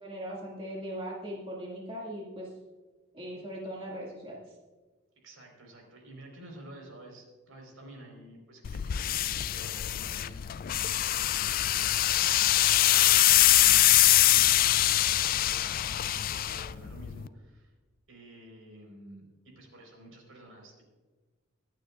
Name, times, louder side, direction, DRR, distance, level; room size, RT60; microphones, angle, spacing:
voice 1, 0.0-2.5 3.1-4.4, equal, 25° right, -4 dB, 2.1 m, -39 dB
voice 2, 5.2-17.7 18.1-20.8, right 1 dB, 85° right, 1 dB, 4.3 m, -51 dB
sound 1, 8.6-17.3, left 14 dB, 45° left, 0.3 m, -24 dB
24.0 x 9.0 x 2.4 m, 1.3 s
head